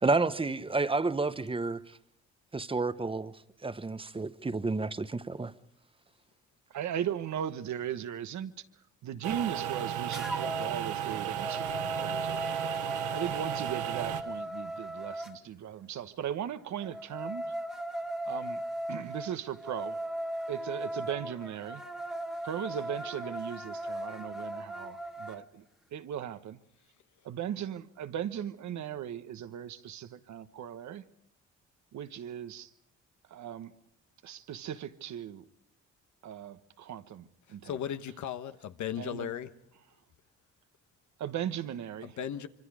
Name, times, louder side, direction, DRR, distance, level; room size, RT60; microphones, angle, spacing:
voice 1, 0.0-1.8 2.5-3.3 3.6-5.5, right 3 dB, 20° right, 0.9 m, -30 dB
voice 2, 6.7-8.6 9.0-12.5 13.1-17.5 18.3-18.6 18.9-20.0 20.5-21.8 22.4-25.6 25.9-26.6 27.2-31.0 31.9-32.7 33.3-33.7 34.2-35.5 36.2-37.8 39.0-39.3 41.2-42.2, right 9 dB, 70° right, 1.2 m, -38 dB
sound 1, 9.2-14.2, right 10 dB, 90° right, 1.3 m, -34 dB
sound 2, 10.1-10.7 11.1-15.3 16.8-25.4, right 1 dB, ahead, 1.4 m, -38 dB
voice 3, 37.6-39.5 42.2-42.5, left 9 dB, 70° left, 1.3 m, -36 dB
25.5 x 24.0 x 4.9 m
cardioid pair, 90°, 30 cm